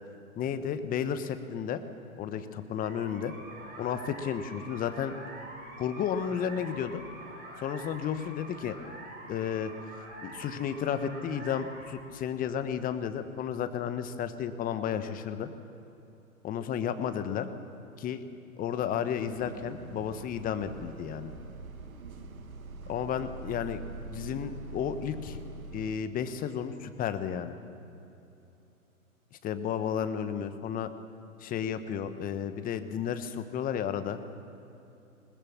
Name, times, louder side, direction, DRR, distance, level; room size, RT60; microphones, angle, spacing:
voice 1, 0.4-1.8 2.2-3.3 3.8-5.2 5.8-7.0 7.6-8.7 9.3-9.7 10.2-15.5 16.4-17.5 18.0-18.2 18.6-21.3 22.9-23.8 24.1-25.4 25.7-27.6 29.3-30.9 31.4-34.2, left 8 dB, 20° left, 10 dB, 1.1 m, -32 dB
sound 1, 2.8-15.1, right 1 dB, 20° right, 5.7 m, -46 dB
Bus, 19.2-26.0, right 3 dB, 75° right, 2.0 m, -44 dB
20.5 x 20.0 x 7.2 m, 2.9 s
hypercardioid pair, 115°, 43 cm